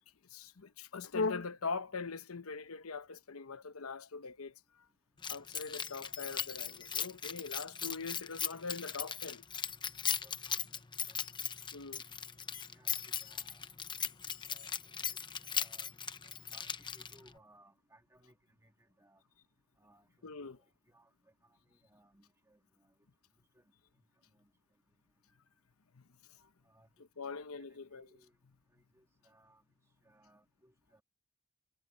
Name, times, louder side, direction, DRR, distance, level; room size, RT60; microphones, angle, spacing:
voice 1, 0.3-4.5 5.3-9.4 11.7-12.0 12.5-12.6 20.2-20.6 25.9-26.0 26.4-26.5 27.2-28.1, left 4 dB, 85° left, 0.9 m, -41 dB
Keys jangling, 5.2-17.4, left 7 dB, 20° left, 0.8 m, -39 dB
voice 2, 10.2-10.7 11.1-11.2 12.7-13.7 14.5-14.7 15.5-15.9 16.2-18.3 18.6-19.2 19.8-20.1 20.4-20.5 20.9-21.1 21.4-22.9 23.5-23.6 24.4-24.5 26.6-26.9 27.2-28.3 28.9-29.6 30.0-31.0, right 1 dB, 15° right, 1.7 m, -65 dB
head